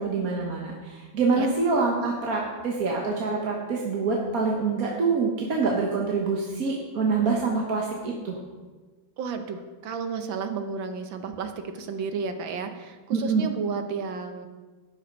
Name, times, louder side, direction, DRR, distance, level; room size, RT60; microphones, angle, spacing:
voice 1, 0.0-8.4 13.1-13.5, right 4 dB, 50° right, -1 dB, 1.4 m, -26 dB
voice 2, 9.2-14.5, right 5 dB, 70° right, 7 dB, 1.6 m, -32 dB
12.0 x 8.6 x 5.3 m, 1.3 s
omnidirectional pair, 2.3 m